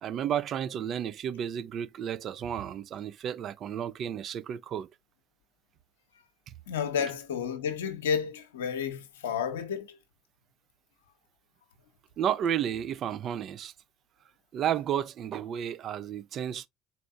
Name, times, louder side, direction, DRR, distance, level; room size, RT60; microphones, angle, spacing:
voice 1, 0.0-4.9 6.5-6.6 12.2-13.7 14.5-16.7, right 9 dB, 50° right, 0.5 m, -32 dB
voice 2, 6.7-10.0, left 7 dB, 80° left, 0.8 m, -31 dB
4.3 x 4.1 x 2.4 m
hypercardioid pair, 65°, 0 cm